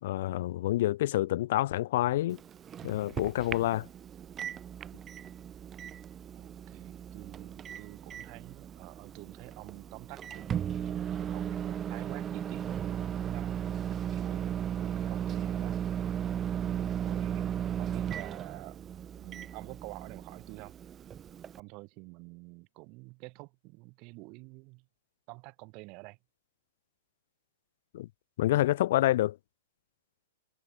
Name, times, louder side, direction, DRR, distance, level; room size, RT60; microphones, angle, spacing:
voice 1, 0.0-2.4 2.8-3.9 27.9-28.1 28.4-29.4, left 15 dB, 60° left, 2.4 m, -27 dB
Microwave oven, 2.3-21.6, right 9 dB, 20° right, 0.6 m, -36 dB
voice 2, 6.3-15.9 16.6-18.8 19.1-20.7 21.6-24.8 25.3-26.2, right 28 dB, 40° right, 6.2 m, -48 dB
hypercardioid pair, 130°, 0 cm